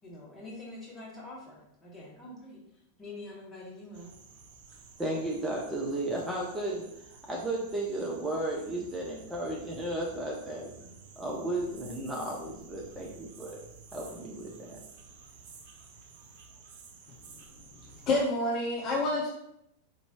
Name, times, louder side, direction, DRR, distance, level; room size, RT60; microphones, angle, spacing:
voice 1, 0.0-4.1, left 2 dB, 15° left, -4 dB, 1.4 m, -46 dB
sound 1, 3.9-18.2, right 5 dB, 50° right, 0.6 m, -52 dB
voice 2, 5.0-13.6 13.9-14.8, right 1 dB, 10° right, -3 dB, 0.6 m, -34 dB
voice 3, 17.9-19.3, left 2 dB, 35° left, -2 dB, 0.7 m, -28 dB
4.6 x 2.7 x 2.9 m, 0.80 s
figure-of-eight pair, 90°, 0 cm